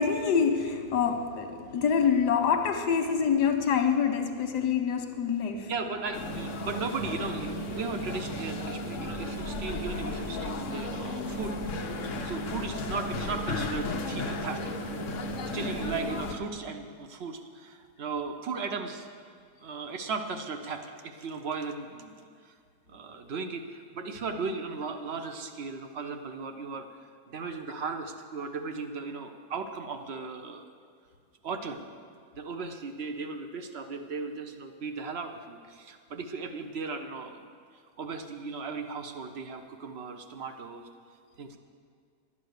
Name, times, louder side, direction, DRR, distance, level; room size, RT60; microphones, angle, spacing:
voice 1, 0.0-5.7 6.1-6.2 15.5-16.0, left 6 dB, 85° left, 5 dB, 1.6 m, -26 dB
voice 2, 5.7-11.6 12.2-14.7 15.5-19.1 19.6-22.1 22.4-22.5 22.9-26.9 27.3-30.6 31.4-31.8 32.4-37.5 38.0-40.9 41.4-41.6, right 4 dB, 55° right, 6 dB, 0.7 m, -36 dB
sound 1, 6.1-16.3, left 1 dB, 55° left, 1.1 m, -34 dB
10.5 x 8.6 x 6.5 m, 2.1 s
omnidirectional pair, 1.7 m